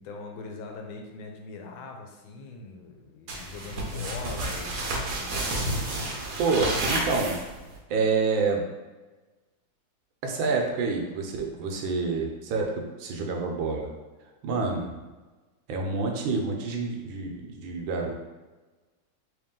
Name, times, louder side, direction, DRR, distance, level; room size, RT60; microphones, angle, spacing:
voice 1, 0.0-5.7, left 3 dB, 80° left, 2 dB, 1.4 m, -42 dB
sound 1, 3.3-7.8, right 1 dB, 60° right, 0.9 m, -30 dB
voice 2, 6.4-7.4 7.9-8.6 10.2-13.9 14.4-15.0 15.7-18.1, right 4 dB, 75° right, 1 dB, 1.4 m, -28 dB
3.3 x 3.0 x 3.6 m, 1.2 s
omnidirectional pair, 2.2 m